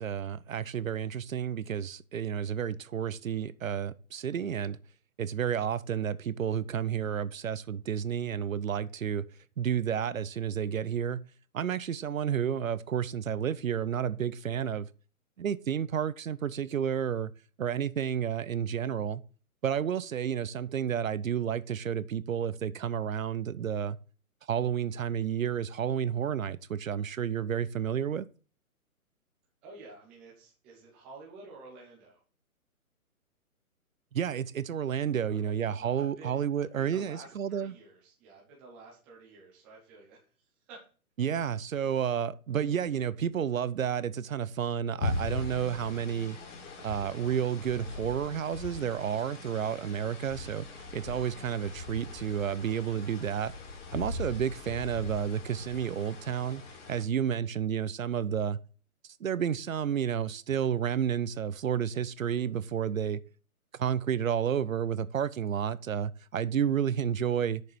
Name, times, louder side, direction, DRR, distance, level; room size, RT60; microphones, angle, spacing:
voice 1, 0.0-4.8 5.2-9.2 9.6-11.2 11.5-14.9 15.4-17.3 17.6-19.2 19.6-24.0 24.5-28.3 34.1-37.7 41.2-46.4 46.8-50.7 50.9-53.5 53.9-56.6 56.9-58.6 59.2-63.2 63.8-67.6, right 8 dB, 65° right, 0.8 m, -31 dB
voice 2, 29.6-32.2 35.3-40.9, right 3 dB, 5° right, 0.5 m, -51 dB
sound 1, 45.0-57.0, left 2 dB, 55° left, 3.1 m, -40 dB
6.7 x 6.6 x 7.2 m
figure-of-eight pair, 140°, 44 cm